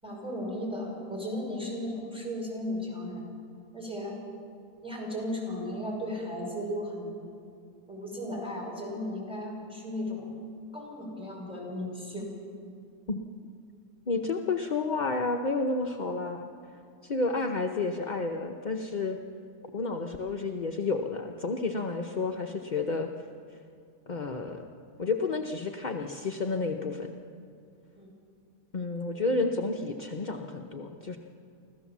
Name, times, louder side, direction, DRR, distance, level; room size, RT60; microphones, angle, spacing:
voice 1, 0.0-3.3 3.7-4.2 4.8-7.1 7.9-10.3 10.7-12.3 28.0-28.1 29.1-29.2, left 1 dB, 5° right, -1 dB, 5.5 m, -35 dB
voice 2, 14.1-16.5 17.0-19.2 19.7-23.1 24.1-24.6 25.0-27.1 28.7-31.2, left 3 dB, 40° left, 3 dB, 0.6 m, -30 dB
25.0 x 16.0 x 7.3 m, 2.5 s
omnidirectional pair, 1.7 m